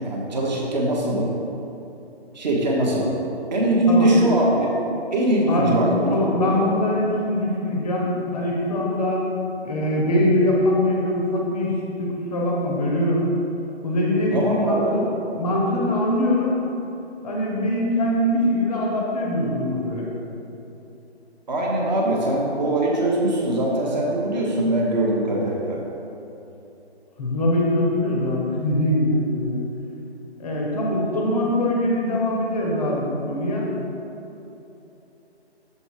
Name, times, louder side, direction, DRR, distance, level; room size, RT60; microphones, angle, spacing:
voice 1, 0.0-1.3 2.3-3.1 3.5-4.7 5.1-6.4 14.3-14.9 21.5-25.8, right 1 dB, 40° right, -2 dB, 1.2 m, -21 dB
voice 2, 5.5-5.8 6.1-9.3 9.6-13.3 13.8-16.6 17.2-20.1 27.2-29.6 30.4-33.7, left 1 dB, 5° left, -3 dB, 0.7 m, -23 dB
6.7 x 5.3 x 4.8 m, 3.0 s
figure-of-eight pair, 150°, 33 cm